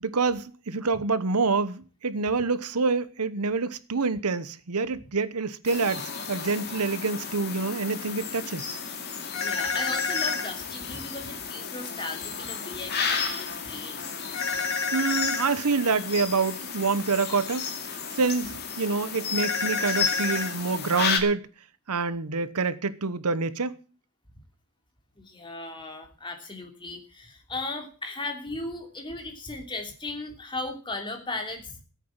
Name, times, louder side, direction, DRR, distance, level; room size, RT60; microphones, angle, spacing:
voice 1, 0.0-8.8 14.9-17.7 18.1-21.5 21.9-23.8, right 4 dB, 90° right, 1.0 m, -27 dB
sound 1, 5.6-21.2, left 6 dB, 45° left, 2.4 m, -33 dB
sound 2, 9.3-10.5 14.3-15.5 19.4-20.5, left 5 dB, 70° left, 4.3 m, -28 dB
voice 2, 9.4-14.0 25.2-31.8, left 2 dB, 20° left, 3.0 m, -36 dB
15.0 x 8.4 x 7.3 m
head